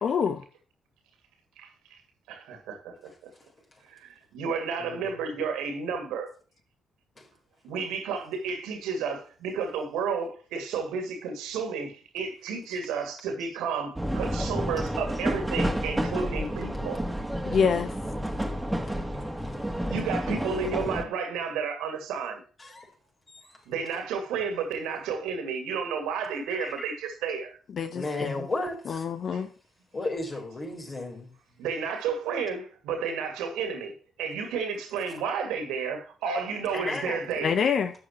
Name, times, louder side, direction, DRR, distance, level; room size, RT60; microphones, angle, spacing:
voice 1, 0.0-0.4 17.4-17.9 27.7-28.4 28.9-29.5 37.4-37.9, left 6 dB, 50° left, 0.8 m, -26 dB
voice 2, 2.3-3.1 4.3-6.3 7.6-17.0 19.8-22.4 23.7-27.5 29.3-29.4 31.6-33.9 34.2-37.6, right 5 dB, 65° right, 2.3 m, -31 dB
voice 3, 4.8-5.1 7.2-7.3 18.9-19.0 19.4-20.0 22.6-22.9 23.3-23.4 26.5-26.7 27.9-29.0 29.9-31.3 36.7-37.2, left 2 dB, 35° left, 4.2 m, -34 dB
sound 1, 14.0-21.0, equal, 10° right, 2.3 m, -30 dB
12.0 x 9.0 x 3.0 m
figure-of-eight pair, 40°, 0 cm